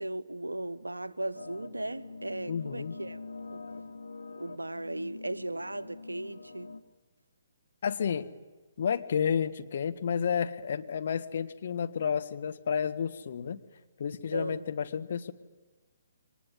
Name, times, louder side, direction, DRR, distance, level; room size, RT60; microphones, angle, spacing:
voice 1, 0.0-3.2 3.5-3.6 4.4-6.7 14.3-14.7, right 1 dB, 80° right, 1.0 m, -37 dB
sound 1, 1.3-6.8, left 3 dB, 75° left, 1.6 m, -45 dB
voice 2, 2.5-2.9 7.8-8.3 8.8-13.6 14.0-15.3, left 7 dB, 50° left, 1.4 m, -31 dB
24.0 x 19.0 x 9.9 m
figure-of-eight pair, 130°, 0 cm